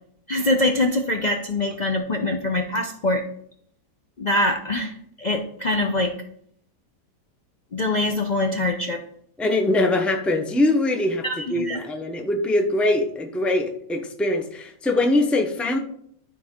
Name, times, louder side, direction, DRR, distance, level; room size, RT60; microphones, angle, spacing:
voice 1, 0.3-3.3 4.2-6.2 7.7-9.0 11.2-11.8, left 2 dB, 80° left, 2 dB, 0.4 m, -24 dB
voice 2, 9.4-11.2 11.5-15.8, left 2 dB, ahead, 4 dB, 0.4 m, -22 dB
12.5 x 4.2 x 3.7 m, 0.65 s
omnidirectional pair, 1.8 m